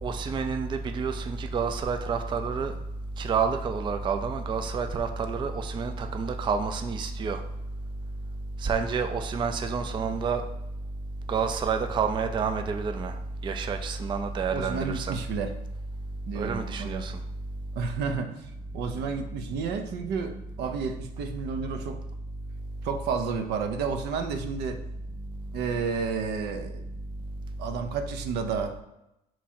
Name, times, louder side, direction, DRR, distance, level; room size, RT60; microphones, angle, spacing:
voice 1, 0.0-2.7 3.2-7.4 8.6-10.4 11.3-13.1 13.4-15.2 16.4-17.2, right 5 dB, 30° right, 7 dB, 0.4 m, -29 dB
voice 2, 14.5-15.5 16.3-17.1 17.8-22.0 22.8-24.8 25.5-26.9 27.6-28.8, right 5 dB, 80° right, 6 dB, 0.6 m, -31 dB
3.6 x 3.0 x 4.3 m, 0.89 s
cardioid pair, 110°, 17 cm